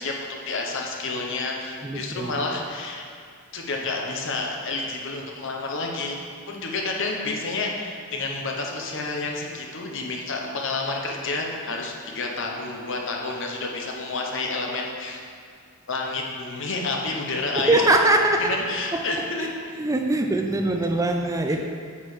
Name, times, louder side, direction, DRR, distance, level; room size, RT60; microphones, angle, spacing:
voice 1, 0.0-3.1 3.5-6.2 6.5-15.2 15.9-17.8 18.4-19.5, left 3 dB, 60° left, 0 dB, 1.0 m, -29 dB
voice 2, 1.8-2.4 17.6-18.6 18.9-19.0 19.4-19.5 19.8-21.6, right 2 dB, 15° right, 4 dB, 0.4 m, -22 dB
8.4 x 4.9 x 4.9 m, 2.2 s
head